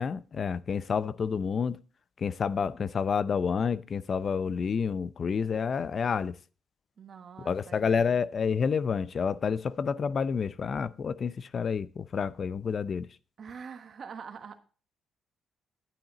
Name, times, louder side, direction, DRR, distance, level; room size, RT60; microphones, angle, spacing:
voice 1, 0.0-1.8 2.2-6.3 7.5-13.1, left 6 dB, 45° left, 0.5 m, -29 dB
voice 2, 7.0-8.2 13.4-14.6, right 6 dB, 50° right, 1.3 m, -45 dB
10.0 x 9.0 x 3.9 m
cardioid pair, 90°, 0 cm